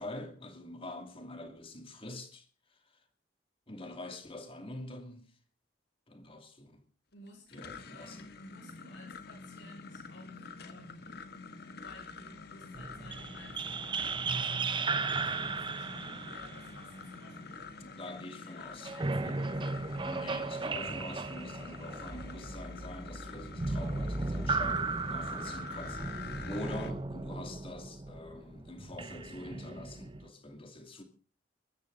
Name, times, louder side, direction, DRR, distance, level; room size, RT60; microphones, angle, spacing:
voice 1, 0.0-2.5 3.7-5.3 6.1-6.8 7.5-8.3 17.8-18.9 19.2-19.5 20.0-31.0, left 1 dB, 30° left, 2.7 m, -45 dB
voice 2, 7.1-11.2 11.6-19.9, left 1 dB, 75° left, 6.2 m, -56 dB
sound 1, 7.3-26.9, left 4 dB, 60° left, 1.5 m, -47 dB
sound 2, 12.7-17.8 18.8-30.3, right 3 dB, 25° right, 0.8 m, -36 dB
22.0 x 14.0 x 4.0 m
head